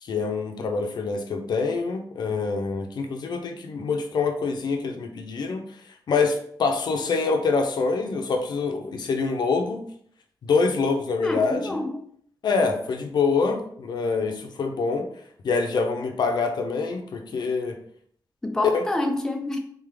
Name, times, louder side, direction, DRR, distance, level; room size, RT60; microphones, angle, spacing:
voice 1, 0.0-5.6 6.1-9.8 10.4-11.8 12.4-15.1 15.4-17.8 18.7-18.8, left 4 dB, 75° left, 4 dB, 0.7 m, -25 dB
voice 2, 11.2-12.0 18.4-19.6, left 2 dB, 10° left, 3 dB, 0.5 m, -27 dB
3.8 x 3.4 x 3.8 m, 0.63 s
wide cardioid pair, 145°, 7 cm